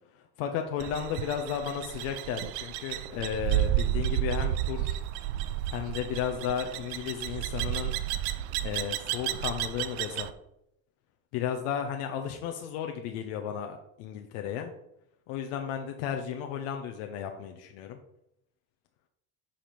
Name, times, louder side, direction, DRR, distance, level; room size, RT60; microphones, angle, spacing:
voice 1, 0.4-5.0 5.7-7.9 8.6-10.3 11.3-14.7 15.3-18.0, left 8 dB, 75° left, 4 dB, 0.9 m, -34 dB
sound 1, 0.8-10.3, right 13 dB, 80° right, 0.6 m, -32 dB
7.7 x 4.3 x 5.2 m, 0.79 s
hypercardioid pair, 65°, 42 cm